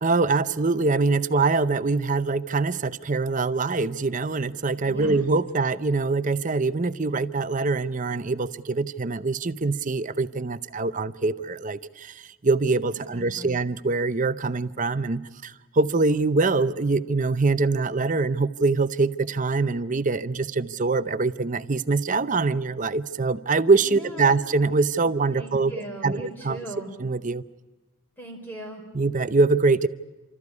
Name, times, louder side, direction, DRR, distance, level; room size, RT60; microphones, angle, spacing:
voice 1, 0.0-25.7 26.0-26.6 27.0-27.4 28.9-29.9, right 3 dB, 35° right, 13 dB, 0.7 m, -24 dB
voice 2, 4.9-5.3 13.1-13.6 23.8-24.4 25.3-26.9 28.2-28.8, right 1 dB, 10° left, 1 dB, 5.2 m, -39 dB
30.0 x 14.0 x 9.6 m, 1.2 s
head